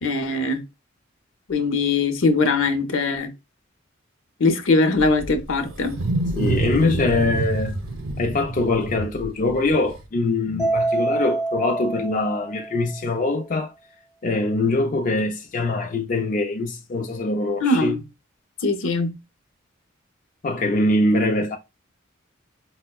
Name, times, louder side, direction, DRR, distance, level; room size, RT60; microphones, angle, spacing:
voice 1, 0.0-0.6 1.5-3.3 4.4-6.0 17.6-18.0 18.6-19.1, left 3 dB, 85° left, 0.6 m, -21 dB
Wild animals, 5.0-10.0, right 2 dB, 80° right, 0.7 m, -27 dB
voice 2, 6.4-7.7 8.2-13.7 14.2-18.0 20.4-21.6, left 2 dB, 40° left, 0.4 m, -23 dB
Mallet percussion, 10.6-13.0, right 2 dB, 10° right, 0.7 m, -26 dB
4.3 x 2.1 x 2.2 m
head